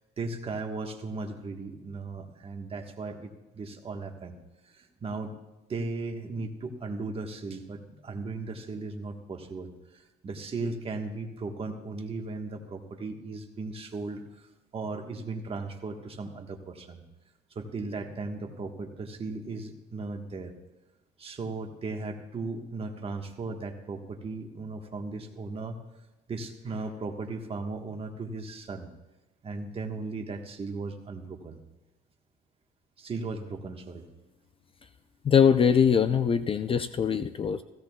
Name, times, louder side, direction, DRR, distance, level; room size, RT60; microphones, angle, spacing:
voice 1, 0.2-4.4 4.6-5.3 5.7-17.0 17.5-20.5 21.2-25.8 26.3-28.9 29.4-31.6 33.0-34.1, right 3 dB, 35° right, 4 dB, 1.4 m, -37 dB
voice 2, 35.2-37.6, left 7 dB, 30° left, 11 dB, 0.4 m, -22 dB
16.0 x 15.5 x 2.3 m, 1.0 s
cardioid pair, 110°, 17 cm